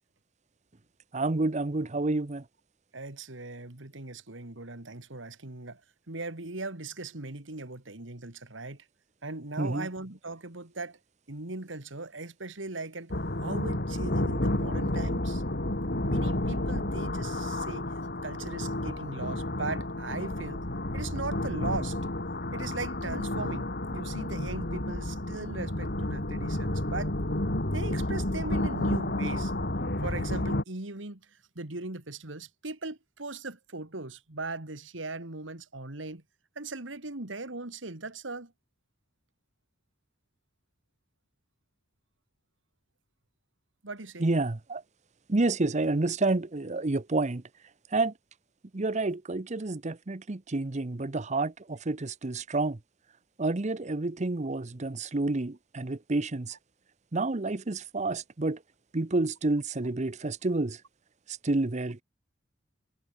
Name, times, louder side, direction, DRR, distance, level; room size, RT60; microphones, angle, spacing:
voice 1, 1.1-2.4 9.6-9.9 44.2-44.8 45.3-47.4 47.9-48.1 48.7-52.8 53.4-56.6 57.1-58.6 58.9-60.8 61.3-62.0, right 2 dB, 35° right, 0.8 m, -29 dB
voice 2, 2.9-5.8 6.1-8.8 9.2-11.0 11.3-13.1 13.4-15.4 16.0-17.9 18.2-20.6 20.9-22.0 22.5-27.2 27.7-29.5 30.0-36.2 36.6-38.5 43.8-44.3, right 3 dB, 75° right, 2.4 m, -39 dB
sound 1, 13.1-30.6, left 1 dB, 55° left, 3.1 m, -31 dB
head